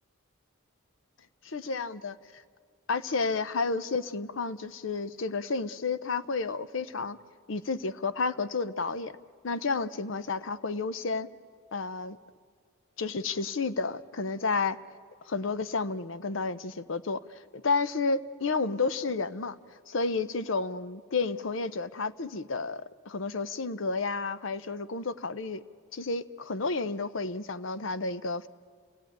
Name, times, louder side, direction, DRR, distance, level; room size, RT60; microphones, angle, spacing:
voice 1, 1.4-2.2 2.9-7.2 7.5-9.1 9.4-11.3 11.7-12.2 13.0-14.8 15.3-17.2 17.5-19.6 19.9-25.6 25.9-28.5, left 4 dB, 60° left, 14 dB, 0.7 m, -31 dB
29.5 x 17.0 x 9.3 m, 2.1 s
head